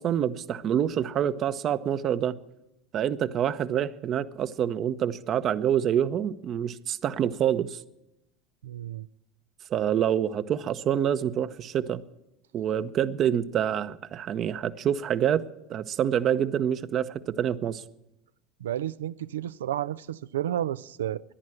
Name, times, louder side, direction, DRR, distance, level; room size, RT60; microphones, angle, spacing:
voice 1, 0.0-2.4 2.9-7.8 9.7-12.0 12.5-15.4 15.7-17.8, right 9 dB, 45° right, 0.8 m, -26 dB
voice 2, 8.6-9.1 18.6-21.2, right 11 dB, 85° right, 0.5 m, -31 dB
14.0 x 10.5 x 7.7 m
hypercardioid pair, 85°, 0 cm